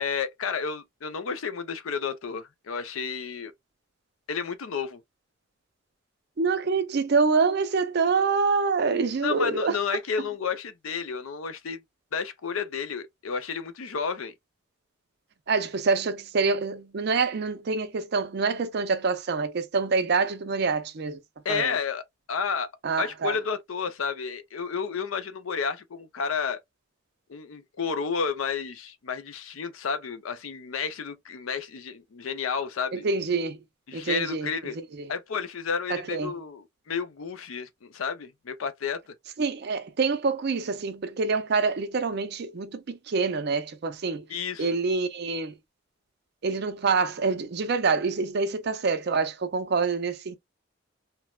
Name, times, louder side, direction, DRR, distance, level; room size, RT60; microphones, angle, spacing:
voice 1, 0.0-3.5 4.3-5.0 9.2-11.8 12.1-14.3 21.4-22.0 22.3-22.7 23.0-26.6 27.3-33.1 33.9-34.8 35.1-39.1 44.3-44.7, left 6 dB, 85° left, 0.5 m, -31 dB
voice 2, 6.4-10.0 15.5-21.2 21.5-21.7 22.8-23.4 32.9-33.6 33.9-35.1 35.9-36.4 39.4-44.3 44.6-45.6 46.4-50.4, right 4 dB, 55° right, 0.4 m, -26 dB
3.1 x 2.0 x 2.2 m
head